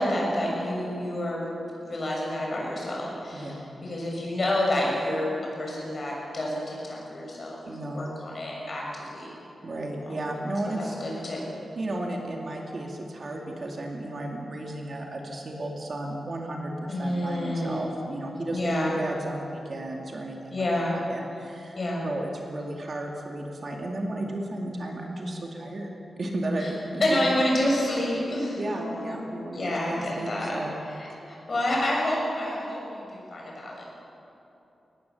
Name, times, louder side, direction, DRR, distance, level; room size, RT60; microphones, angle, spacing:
voice 1, 0.0-1.5 1.8-9.3 10.8-11.4 16.9-17.8 18.5-19.0 20.5-21.0 21.7-22.1 26.6-26.7 27.0-29.2 29.5-30.6 30.9-33.9, left 1 dB, 35° left, -3 dB, 6.7 m, -29 dB
voice 2, 3.3-3.6 7.7-8.1 9.6-10.9 11.8-21.8 22.0-25.9 26.2-27.4 28.6-30.7, right 1 dB, 40° right, 0 dB, 2.4 m, -34 dB
23.5 x 19.0 x 7.1 m, 3.0 s
wide cardioid pair, 170°, 0 cm